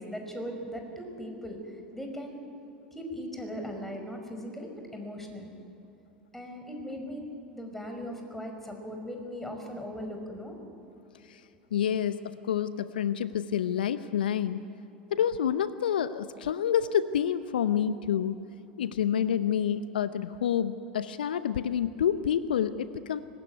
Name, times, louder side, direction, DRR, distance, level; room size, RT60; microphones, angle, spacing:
voice 1, 0.0-2.4 2.9-5.5 6.3-7.2 7.5-10.5, equal, 5° left, 3 dB, 5.5 m, -39 dB
voice 2, 11.7-14.6 15.1-18.4 18.8-23.2, left 9 dB, 75° left, 14 dB, 0.7 m, -28 dB
24.0 x 20.5 x 9.6 m, 2.9 s
figure-of-eight pair, 80°, 5 cm